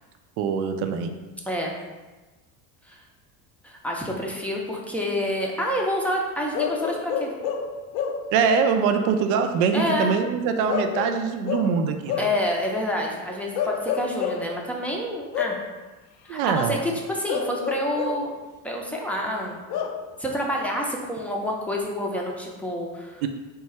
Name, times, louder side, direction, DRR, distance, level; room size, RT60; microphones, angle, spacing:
voice 1, 0.4-1.1 8.3-12.2 16.3-16.7 23.2-23.3, right 6 dB, 80° right, 6 dB, 0.5 m, -23 dB
voice 2, 3.6-7.3 9.7-10.1 12.2-15.6 16.3-18.3 18.6-19.6 20.2-23.2, left 1 dB, 5° left, -1 dB, 0.5 m, -28 dB
Bark / Livestock farm animals working animals, 6.5-8.4 10.7-12.4 13.5-14.5 15.3-15.7 17.3-18.3 19.7-20.1, left 7 dB, 60° left, 0.5 m, -29 dB
3.7 x 2.2 x 4.2 m, 1.2 s
supercardioid pair, 105°, 42 cm